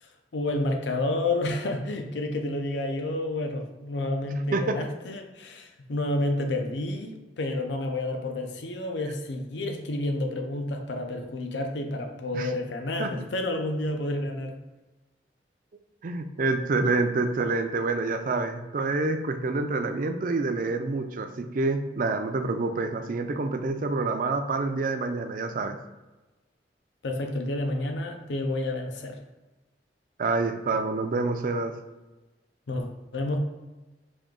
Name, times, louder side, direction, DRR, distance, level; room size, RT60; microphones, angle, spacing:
voice 1, 0.0-14.5 27.0-29.2 32.7-33.4, left 2 dB, 85° left, 4 dB, 0.6 m, -30 dB
voice 2, 16.0-25.8 30.2-31.7, right 3 dB, 50° right, 7 dB, 0.4 m, -27 dB
5.2 x 2.8 x 3.7 m, 1.1 s
head